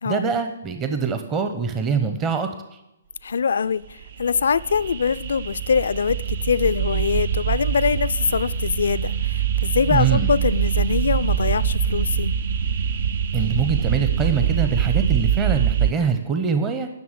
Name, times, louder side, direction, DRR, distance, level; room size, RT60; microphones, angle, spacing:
voice 1, 0.0-2.8 9.9-10.3 13.3-16.9, right 5 dB, 20° right, 0.7 m, -24 dB
voice 2, 3.2-3.8 4.2-12.4, left 6 dB, 70° left, 0.3 m, -23 dB
sound 1, 3.9-15.9, right 8 dB, 60° right, 0.5 m, -24 dB
11.0 x 6.1 x 6.5 m
figure-of-eight pair, 130°, 0 cm